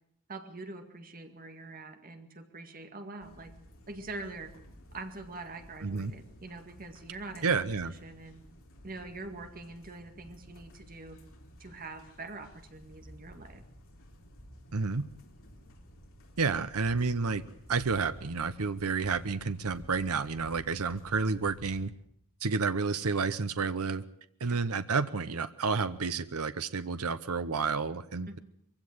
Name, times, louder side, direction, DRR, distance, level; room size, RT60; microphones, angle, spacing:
voice 1, 0.3-3.5 3.9-4.5 4.9-8.4 8.8-11.2 11.6-13.6 24.4-24.6 28.3-28.4, right 3 dB, 40° right, 6 dB, 2.1 m, -44 dB
sound 1, 3.2-21.9, equal, 65° left, 3.7 m, -53 dB
voice 2, 7.4-7.9 14.7-15.0 16.4-17.4 17.7-21.9 22.4-24.0 24.4-28.4, right 4 dB, 75° right, 12 dB, 0.8 m, -30 dB
22.5 x 16.0 x 8.0 m, 0.72 s
head